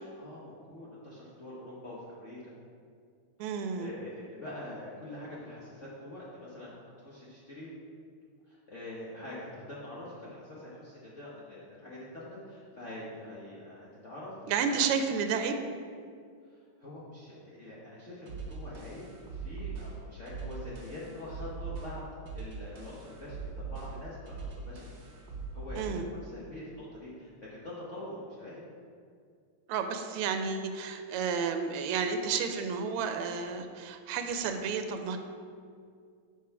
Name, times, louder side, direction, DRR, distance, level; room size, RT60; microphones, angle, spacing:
voice 1, 0.1-2.5 3.4-7.7 8.5-14.6 16.5-19.0 19.3-22.0 22.3-24.9 25.5-28.6, left 1 dB, 45° left, -7 dB, 1.0 m, -45 dB
voice 2, 3.4-3.9 14.5-15.5 25.8-26.0 29.7-35.2, right 6 dB, 90° right, 7 dB, 1.5 m, -31 dB
sound 1, 18.3-26.1, right 4 dB, 60° right, 1.7 m, -41 dB
6.1 x 4.5 x 5.6 m, 2.2 s
omnidirectional pair, 2.4 m